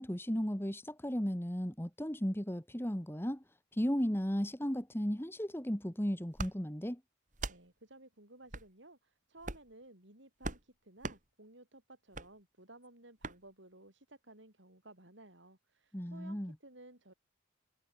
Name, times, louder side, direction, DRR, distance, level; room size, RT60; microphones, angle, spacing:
voice 1, 0.0-3.4 3.7-7.0 15.9-16.5, equal, 10° left, 1.9 m, -35 dB
sound 1, 6.3-6.5 7.3-7.6 8.5-8.7 9.4-9.7 10.4-10.6 11.0-11.2 12.1-12.3 13.2-13.4, right 2 dB, 40° right, 3.3 m, -40 dB
voice 2, 7.5-17.1, right 2 dB, 70° right, 7.2 m, -57 dB
head